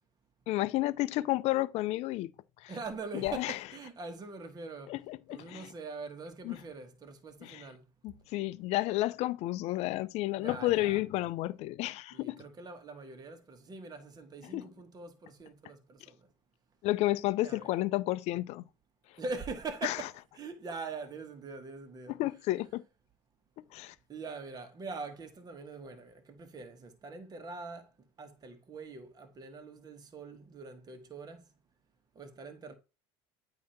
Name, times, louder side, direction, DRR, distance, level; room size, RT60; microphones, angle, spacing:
voice 1, 0.5-2.3 2.6-2.7 3.1-3.6 4.9-5.7 6.4-6.6 7.4-7.7 8.0-12.4 14.4-14.7 16.8-18.6 19.8-20.0 22.1-22.8 23.7-23.9, left 17 dB, 55° left, 0.5 m, -31 dB
voice 2, 2.7-4.9 5.3-7.8 10.4-11.0 12.1-16.2 17.4-17.8 19.2-22.2 24.1-27.9 28.2-31.4 32.1-32.7, right 4 dB, 30° right, 1.5 m, -43 dB
8.4 x 2.9 x 5.8 m
supercardioid pair, 95°, 13 cm